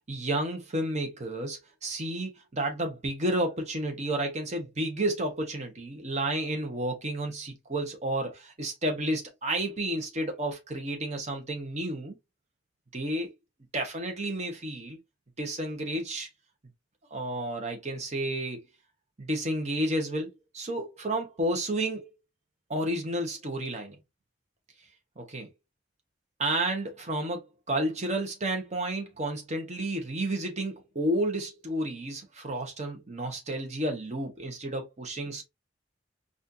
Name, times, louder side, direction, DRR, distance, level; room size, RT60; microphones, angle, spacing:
voice 1, 0.1-12.2 12.9-13.3 13.7-15.0 15.4-16.3 17.1-18.7 19.2-22.1 22.7-24.0 25.2-25.5 26.4-35.4, right 1 dB, 40° right, 1.0 m, -31 dB
4.3 x 2.5 x 2.6 m
head